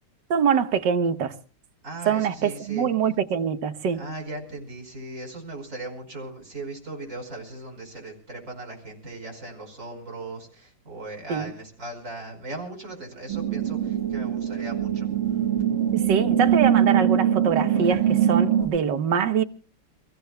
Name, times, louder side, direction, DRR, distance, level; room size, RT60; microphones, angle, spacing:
voice 1, 0.3-1.3 2.0-4.0 11.3-11.5 15.9-19.4, right 7 dB, 70° right, 1.6 m, -24 dB
voice 2, 1.8-2.9 3.9-15.1, right 2 dB, 40° right, 5.4 m, -38 dB
sound 1, 13.3-18.7, right 10 dB, 85° right, 2.4 m, -22 dB
29.5 x 15.5 x 2.3 m
omnidirectional pair, 2.1 m